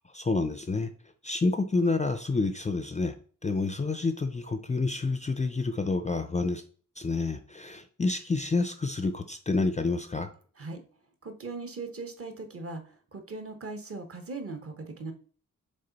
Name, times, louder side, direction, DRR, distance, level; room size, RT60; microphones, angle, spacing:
voice 1, 0.1-0.9 1.2-3.1 3.4-6.6 7.0-10.3, left 3 dB, 20° left, 9 dB, 0.4 m, -28 dB
voice 2, 11.2-12.8 13.1-15.1, right 3 dB, 45° right, 7 dB, 1.1 m, -39 dB
6.6 x 3.8 x 4.0 m, 0.44 s
wide cardioid pair, 130°, 32 cm